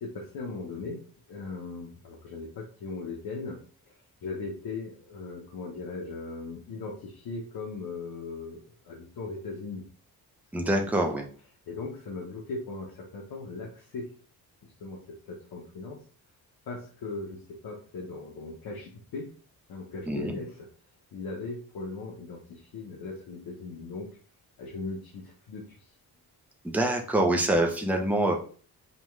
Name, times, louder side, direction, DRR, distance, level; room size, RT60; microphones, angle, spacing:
voice 1, 0.0-3.6 4.2-9.9 10.6-10.9 11.7-14.1 14.6-16.0 16.7-19.3 19.7-20.7 21.1-24.1 24.6-25.9, left 3 dB, 75° left, -2 dB, 0.9 m, -38 dB
voice 2, 10.5-11.3 20.1-20.4 26.6-28.4, right 1 dB, 5° right, 2 dB, 0.6 m, -25 dB
5.3 x 2.3 x 3.1 m, 0.42 s
wide cardioid pair, 160°, 37 cm